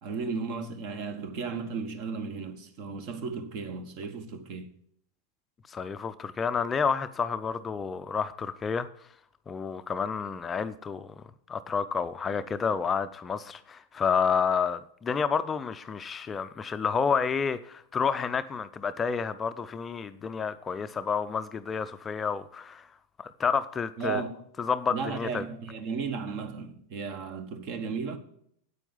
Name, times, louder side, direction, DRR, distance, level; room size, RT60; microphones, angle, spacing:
voice 1, 0.0-4.7 24.0-24.3 24.9-28.2, right 5 dB, 45° right, 1.3 m, -34 dB
voice 2, 5.7-8.9 9.5-11.2 11.5-22.9 23.2-24.2 24.6-25.5, left 6 dB, 20° left, 0.5 m, -30 dB
9.1 x 8.4 x 5.5 m
figure-of-eight pair, 90°, 0 cm